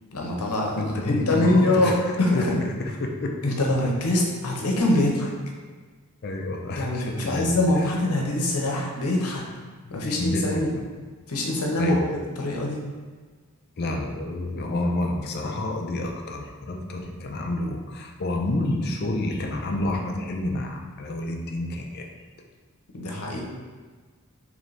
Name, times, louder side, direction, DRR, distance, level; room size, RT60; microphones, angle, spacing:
voice 1, 0.1-2.6 3.4-5.3 6.8-9.4 9.9-10.7 11.3-12.9 22.9-23.4, left 1 dB, 90° left, -1 dB, 0.8 m, -24 dB
voice 2, 0.8-2.0 2.3-2.5 2.8-3.5 6.2-7.6 9.8-10.8 11.8-12.0 13.8-22.1, left 1 dB, 45° left, 2 dB, 0.4 m, -29 dB
3.9 x 3.1 x 3.2 m, 1.4 s
head